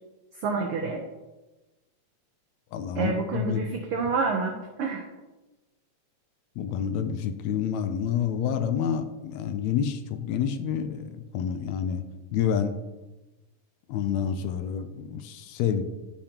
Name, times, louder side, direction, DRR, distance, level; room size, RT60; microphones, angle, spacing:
voice 1, 0.4-1.0 3.0-5.1, right 4 dB, 85° right, 3 dB, 1.2 m, -28 dB
voice 2, 2.7-3.6 6.6-12.0 12.3-12.8 13.9-15.8, left 8 dB, 80° left, 8 dB, 1.8 m, -28 dB
12.5 x 5.2 x 2.9 m, 1.1 s
omnidirectional pair, 3.3 m